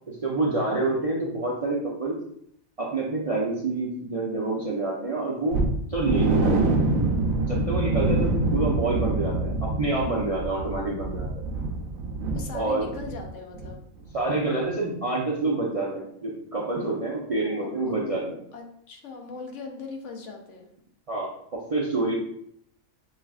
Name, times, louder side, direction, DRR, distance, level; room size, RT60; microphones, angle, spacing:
voice 1, 0.1-2.2 2.8-5.6 5.9-6.7 7.4-11.3 12.5-12.9 14.1-18.2 21.1-22.1, right 2 dB, 45° right, -4 dB, 0.4 m, -27 dB
sound 1, 5.5-13.3 13.5-13.7 14.1-14.2, right 2 dB, 80° right, 1.0 m, -26 dB
voice 2, 12.3-13.8 17.2-18.1 18.5-20.7, left 4 dB, 70° left, 2 dB, 1.0 m, -39 dB
6.4 x 2.4 x 2.3 m, 0.70 s
omnidirectional pair, 1.4 m